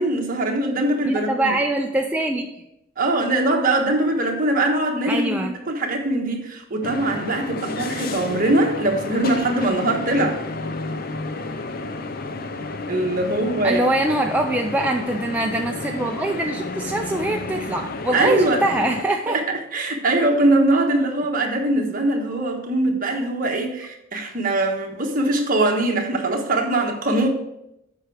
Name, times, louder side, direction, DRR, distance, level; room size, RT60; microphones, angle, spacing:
voice 1, 0.0-1.5 3.0-10.4 12.9-13.8 18.1-18.6 19.3-27.3, right 2 dB, 40° right, 1 dB, 1.3 m, -22 dB
voice 2, 1.1-2.5 5.1-5.5 13.6-19.4 23.8-23.9, right 1 dB, 5° right, 1 dB, 0.4 m, -23 dB
sound 1, 6.8-19.0, left 3 dB, 45° left, 0.5 m, -31 dB
7.8 x 5.7 x 4.8 m, 0.83 s
head